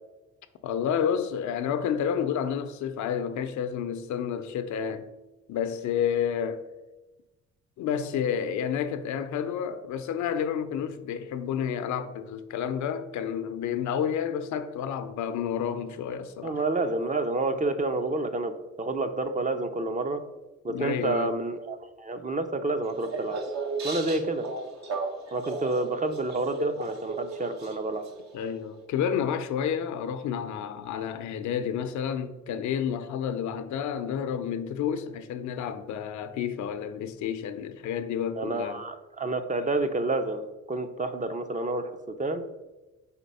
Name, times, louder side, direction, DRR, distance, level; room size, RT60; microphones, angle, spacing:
voice 1, 0.6-5.0 5.5-6.6 7.8-16.6 20.7-21.4 28.3-38.8, left 8 dB, 70° left, 0.5 m, -30 dB
voice 2, 16.4-18.5 18.8-20.2 20.6-23.4 23.8-24.5 25.3-28.0 38.4-41.9 42.2-42.4, right 2 dB, 25° right, 0.5 m, -29 dB
sound 1, 22.8-28.4, right 3 dB, 60° right, 1.0 m, -35 dB
4.3 x 4.1 x 5.3 m
cardioid pair, 90°, 30 cm